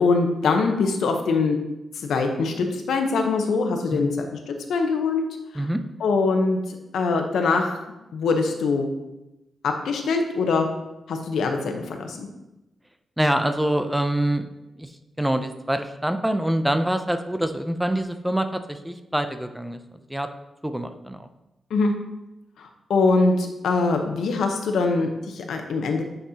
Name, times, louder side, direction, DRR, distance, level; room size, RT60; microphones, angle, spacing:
voice 1, 0.0-1.6 2.0-5.2 6.0-7.9 8.1-8.9 9.6-10.7 11.1-12.3 21.7-21.9 22.6-26.0, left 4 dB, 90° left, 4 dB, 0.8 m, -23 dB
voice 2, 13.2-14.5 14.7-19.8 20.1-20.3 20.6-21.3, right 1 dB, 5° right, 8 dB, 0.4 m, -25 dB
9.0 x 5.4 x 2.8 m, 0.97 s
wide cardioid pair, 145°, 0 cm